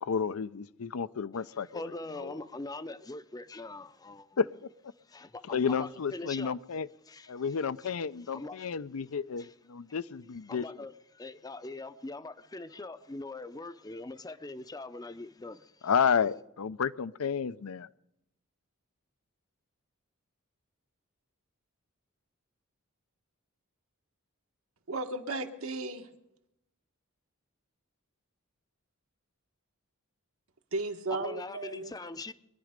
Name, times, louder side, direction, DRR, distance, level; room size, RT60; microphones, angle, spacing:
voice 1, 0.0-1.8 2.2-2.3 4.4-4.5 5.5-6.9 7.3-10.6 15.8-17.9, left 6 dB, 80° left, 0.5 m, -31 dB
voice 2, 1.5-4.4 5.1-6.6 7.1-7.3 7.8-8.0 8.3-8.7 9.4-9.5 10.5-15.9 31.1-32.3, left 2 dB, 20° left, 0.5 m, -42 dB
voice 3, 24.9-26.1 30.7-32.0, right 2 dB, 75° right, 1.3 m, -35 dB
23.5 x 10.5 x 5.2 m
head